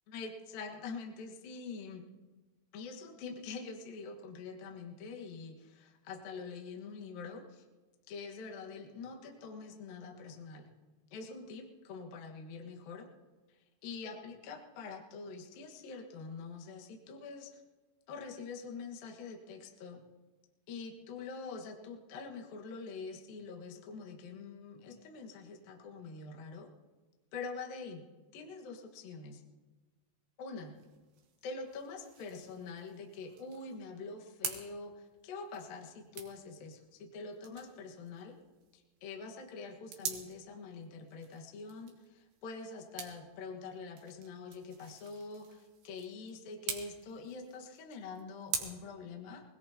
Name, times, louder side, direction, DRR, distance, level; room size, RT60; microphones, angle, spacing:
voice 1, 0.1-2.1 2.7-7.6 8.1-10.7 11.1-13.1 13.5-17.6 18.1-20.0 20.7-26.7 27.3-28.1 28.3-29.4 30.4-30.8 31.4-38.4 38.7-49.4, left 4 dB, 60° left, 0 dB, 2.7 m, -45 dB
sound 1, 30.5-48.6, right 7 dB, 60° right, 3.1 m, -47 dB
23.0 x 21.0 x 2.9 m, 1.3 s
omnidirectional pair, 5.6 m